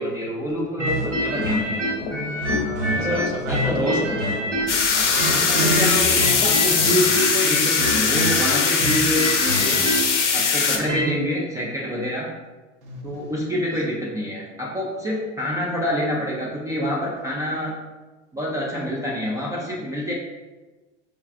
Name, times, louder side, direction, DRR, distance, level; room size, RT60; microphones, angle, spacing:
voice 1, 0.0-2.1 2.9-4.0 4.9-9.8 10.3-12.3 13.0-17.7 18.3-20.1, equal, 10° right, 0.3 m, -26 dB
sound 1, 0.8-4.8 5.1-11.1, equal, 90° right, 0.9 m, -26 dB
sound 2, 1.0-7.2, left 3 dB, 50° left, 0.7 m, -34 dB
voice 2, 2.4-5.0 12.8-13.2, right 1 dB, 60° right, 0.8 m, -34 dB
sound 3, 4.7-10.8, left 5 dB, 85° left, 0.6 m, -20 dB
4.7 x 2.3 x 2.4 m
hypercardioid pair, 90°, 35 cm